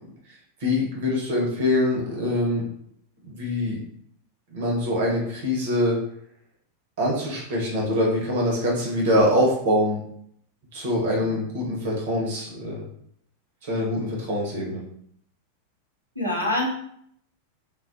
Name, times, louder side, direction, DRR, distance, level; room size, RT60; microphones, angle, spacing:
voice 1, 0.6-2.6 3.2-3.8 4.5-6.0 7.0-10.0 10.7-12.8 13.6-14.8, left 1 dB, 55° right, -3 dB, 0.8 m, -24 dB
voice 2, 16.1-16.7, left 1 dB, 90° left, -4 dB, 0.6 m, -26 dB
2.3 x 2.1 x 2.6 m, 0.69 s
figure-of-eight pair, 90°, 0 cm